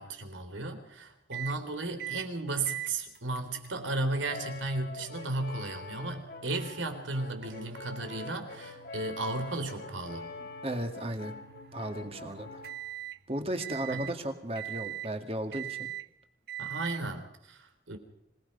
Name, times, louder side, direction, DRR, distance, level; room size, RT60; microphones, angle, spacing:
voice 1, 0.0-10.5 13.9-14.1 16.6-18.0, right 2 dB, 85° right, 7 dB, 3.6 m, -35 dB
sound 1, 1.3-1.6 2.0-2.3 2.7-13.2 13.6-14.2 14.6-15.1 15.5-16.1 16.5-17.0, right 12 dB, 55° right, 1.2 m, -44 dB
Brass instrument, 4.3-12.8, left 3 dB, 50° left, 1.7 m, -45 dB
voice 2, 10.6-11.3 11.7-12.6 13.3-15.9, right 1 dB, 30° right, 6 dB, 2.1 m, -35 dB
26.0 x 18.5 x 5.5 m, 0.81 s
head